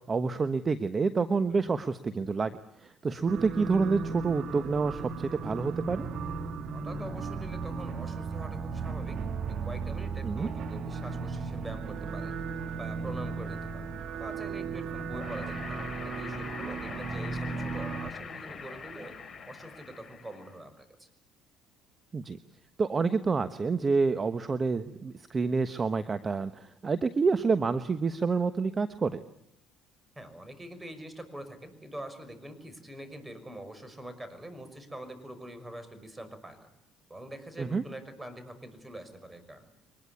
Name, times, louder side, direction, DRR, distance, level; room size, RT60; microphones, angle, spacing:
voice 1, 0.0-2.5 2.8-6.0 10.2-10.5 22.1-22.4 22.8-29.2 37.6-37.8, right 4 dB, 30° right, 12 dB, 1.2 m, -28 dB
sound 1, 3.3-18.1, right 5 dB, 60° right, 2.0 m, -36 dB
voice 2, 6.7-9.2 9.5-12.4 12.8-19.2 19.5-21.1 27.6-27.8 30.2-36.7 37.1-39.7, right 1 dB, 15° right, 10 dB, 5.9 m, -44 dB
sound 2, 15.1-20.5, left 5 dB, 35° left, 5.1 m, -42 dB
24.0 x 20.5 x 9.7 m, 0.76 s
supercardioid pair, 85°, 0 cm